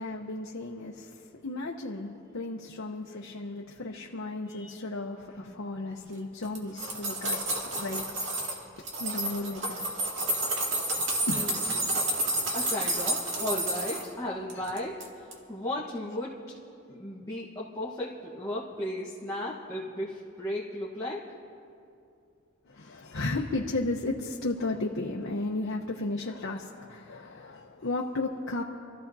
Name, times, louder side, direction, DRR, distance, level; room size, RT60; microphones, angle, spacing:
voice 1, 0.0-8.3 9.0-9.8 10.7-10.9 11.3-12.0 12.3-12.5 14.5-14.7 22.6-28.6, left 2 dB, 70° left, -1 dB, 0.8 m, -34 dB
sound 1, 6.4-8.6 8.9-14.1 14.5-15.1 15.3-15.4, right 1 dB, 65° right, 2.1 m, -30 dB
voice 2, 12.5-16.4 16.9-21.3, left 1 dB, 15° left, -6 dB, 1.1 m, -35 dB
28.0 x 14.5 x 2.7 m, 2.6 s
head